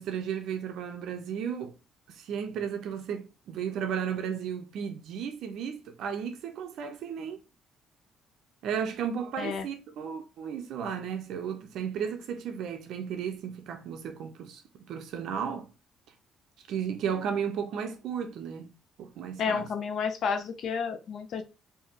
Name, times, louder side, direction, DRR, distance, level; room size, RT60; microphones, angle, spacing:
voice 1, 0.0-1.7 2.1-7.4 8.6-15.7 16.7-18.7 19.0-19.7, right 7 dB, 65° right, 0.6 m, -34 dB
voice 2, 9.4-9.7 19.4-21.4, left 6 dB, 50° left, 0.5 m, -31 dB
4.6 x 2.7 x 2.9 m
cardioid pair, 165°, 0 cm